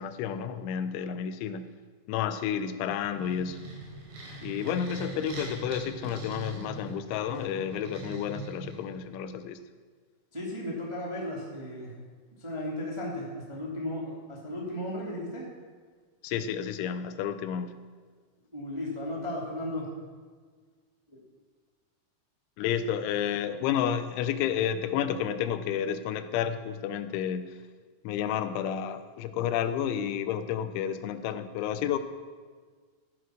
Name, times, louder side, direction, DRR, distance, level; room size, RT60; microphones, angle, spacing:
voice 1, 0.0-1.7 2.1-3.6 4.4-9.6 16.2-17.7 22.6-27.6 28.0-32.0, left 9 dB, 85° left, 11 dB, 3.1 m, -31 dB
sound 1, 2.8-9.2, right 3 dB, 60° right, 5.8 m, -42 dB
voice 2, 10.3-11.9 12.4-15.4 18.5-19.8 21.1-21.2, left 1 dB, 15° right, -4 dB, 1.2 m, -35 dB
14.0 x 10.0 x 6.4 m, 1.6 s
omnidirectional pair, 5.3 m